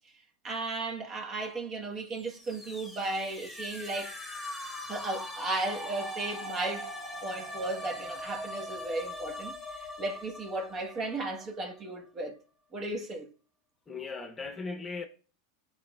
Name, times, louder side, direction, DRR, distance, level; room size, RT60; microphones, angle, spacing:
voice 1, 0.4-4.2 4.9-6.9 7.2-12.4 12.7-13.3, right 2 dB, 35° right, 1.3 m, -35 dB
sound 1, 2.1-11.9, left 1 dB, ahead, 2.1 m, -41 dB
voice 2, 13.9-15.1, left 4 dB, 20° left, 0.9 m, -38 dB
12.5 x 4.1 x 2.3 m
hypercardioid pair, 105°, 0 cm